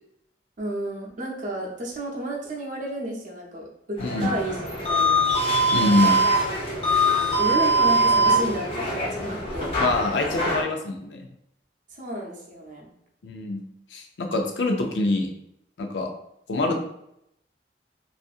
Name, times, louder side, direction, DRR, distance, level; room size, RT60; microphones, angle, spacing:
voice 1, 0.6-4.6 4.9-5.2 5.8-6.2 7.4-9.8 11.9-12.9, right 1 dB, 50° right, -1 dB, 0.6 m, -32 dB
voice 2, 4.0-4.3 5.7-6.2 9.8-11.3 13.2-13.6 13.9-15.3 15.8-16.1 16.5-16.9, left 2 dB, 85° left, 4 dB, 0.5 m, -25 dB
sound 1, 4.0-10.6, right 1 dB, 35° left, 0.6 m, -22 dB
2.6 x 2.4 x 2.4 m, 0.78 s
head